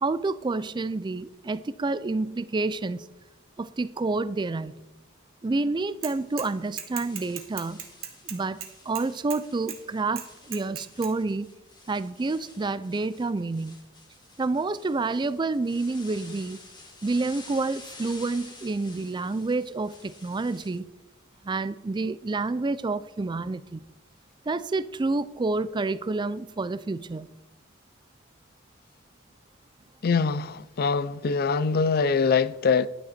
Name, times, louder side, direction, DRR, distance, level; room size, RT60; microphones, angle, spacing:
voice 1, 0.0-3.1 3.6-4.8 5.4-7.9 8.3-11.5 11.9-13.9 14.4-16.6 17.0-20.9 21.4-23.9 24.5-27.3, right 3 dB, 20° right, 0.4 m, -29 dB
Bicycle / Mechanisms, 6.0-6.5 6.8-9.4 9.7-9.8 10.2-11.1, right 10 dB, 80° right, 1.5 m, -37 dB
sound 1, 6.1-20.8, left 2 dB, 20° left, 2.0 m, -50 dB
voice 2, 30.0-32.9, left 5 dB, 50° left, 0.4 m, -23 dB
11.0 x 9.4 x 4.3 m
head